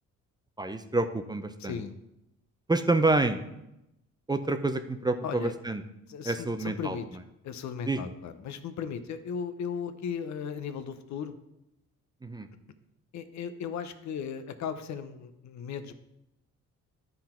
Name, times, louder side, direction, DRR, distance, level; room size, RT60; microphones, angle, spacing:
voice 1, 0.6-1.8 2.7-3.4 4.3-5.8 6.2-7.0 7.9-8.0 12.2-12.5, right 2 dB, 15° right, 9 dB, 0.5 m, -28 dB
voice 2, 1.6-2.0 5.2-5.5 6.1-7.1 7.4-11.3 13.1-15.9, left 7 dB, 70° left, 10 dB, 0.7 m, -36 dB
11.0 x 3.9 x 4.4 m, 0.88 s
cardioid pair, 90°, 30 cm